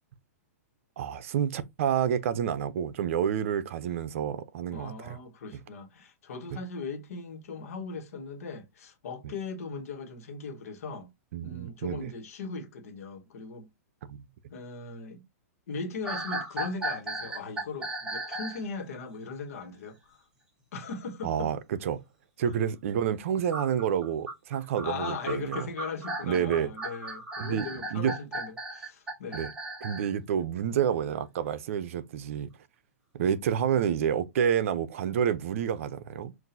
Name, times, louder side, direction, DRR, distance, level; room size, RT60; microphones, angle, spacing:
voice 1, 1.0-5.2 11.3-12.1 14.1-14.3 21.2-22.0 22.4-25.7 26.2-26.7 27.4-28.1 29.3-29.5 29.8-32.5 33.2-36.3, right 8 dB, 55° right, 0.6 m, -29 dB
voice 2, 4.7-11.1 11.4-13.7 14.5-15.2 15.7-20.2 20.7-21.5 24.6-29.5, left 4 dB, 65° left, 1.3 m, -39 dB
sound 1, 16.0-18.6 23.5-30.1, right 2 dB, 10° right, 1.0 m, -36 dB
5.9 x 2.6 x 2.7 m
hypercardioid pair, 155°, 8 cm